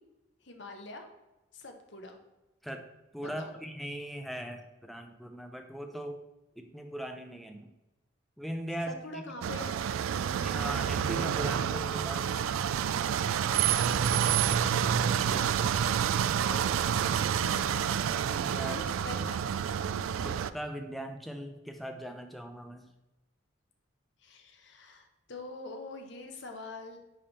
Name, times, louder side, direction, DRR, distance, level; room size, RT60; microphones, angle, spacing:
voice 1, 0.4-1.1 1.5-2.2 3.2-3.5 8.9-9.7 14.4-15.5 16.1-17.0 17.4-17.9 18.6-19.6 24.2-27.0, left 2 dB, 60° left, 4 dB, 1.1 m, -45 dB
voice 2, 2.6-6.2 6.6-7.7 8.4-9.2 10.4-12.4 18.2-18.8 19.2-19.3 20.2-22.9, equal, ahead, 5 dB, 0.5 m, -40 dB
sound 1, 9.4-20.5, right 8 dB, 85° right, 0.3 m, -28 dB
10.0 x 3.6 x 4.2 m, 1.0 s
head